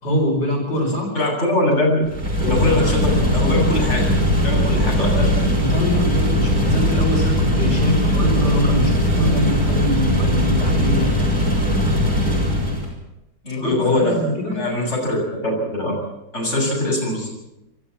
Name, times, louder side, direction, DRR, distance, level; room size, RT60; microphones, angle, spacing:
voice 1, 0.0-1.1 5.6-11.1 13.5-14.6, equal, 80° left, -1 dB, 6.5 m, -23 dB
voice 2, 0.8-2.0 2.4-5.3 13.4-16.0 16.3-17.3, left 1 dB, 40° left, -2 dB, 7.7 m, -22 dB
sound 1, 2.1-12.9, equal, 60° right, 6.9 m, -19 dB
30.0 x 13.0 x 7.4 m, 0.90 s
omnidirectional pair, 1.8 m